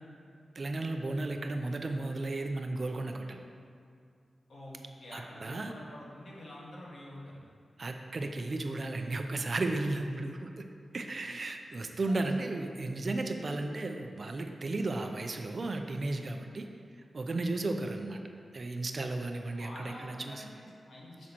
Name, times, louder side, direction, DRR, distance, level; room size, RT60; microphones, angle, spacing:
voice 1, 0.6-3.4 5.1-5.7 7.8-10.6 10.9-16.7 17.1-18.2 18.5-20.4, right 2 dB, 45° right, 5 dB, 0.5 m, -34 dB
voice 2, 5.0-7.4 12.2-12.3 19.5-21.3, left 1 dB, 70° left, -5 dB, 1.6 m, -47 dB
8.3 x 6.2 x 3.0 m, 2.3 s
wide cardioid pair, 110°, 0 cm